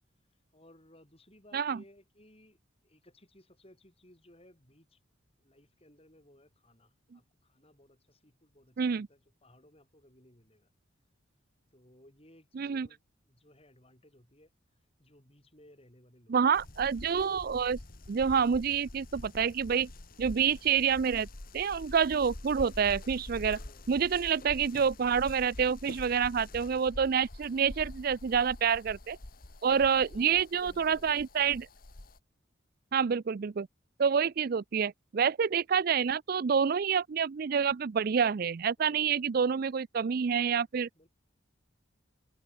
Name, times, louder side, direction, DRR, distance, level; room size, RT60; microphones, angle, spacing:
voice 1, 0.5-5.0 5.4-10.7 11.7-14.5 15.0-16.4 23.5-23.9 24.2-24.5 29.6-31.2 34.1-34.3 38.8-39.7 40.9-41.1, left 1 dB, 30° left, 7.5 m, -60 dB
voice 2, 12.6-12.9 16.3-17.8 18.1-19.9 20.2-21.3 21.5-23.6 23.9-29.2 29.6-31.7 32.9-33.7 34.0-40.9, right 7 dB, 45° right, 0.4 m, -28 dB
sound 1, 16.5-32.2, left 1 dB, 45° left, 1.5 m, -46 dB
head